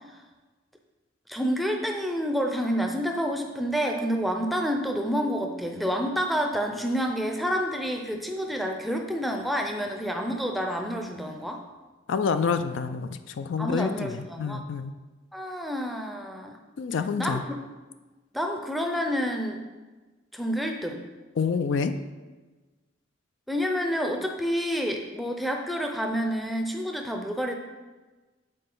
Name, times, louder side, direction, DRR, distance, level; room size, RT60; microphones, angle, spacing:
voice 1, 1.3-11.6 13.6-14.6 15.3-16.6 17.2-17.5 18.3-19.6 20.3-21.1 23.5-27.5, equal, ahead, 2 dB, 0.5 m, -28 dB
voice 2, 12.1-14.9 16.8-17.4 21.4-21.9, left 5 dB, 70° left, 10 dB, 0.4 m, -27 dB
7.6 x 4.3 x 3.8 m, 1.2 s
head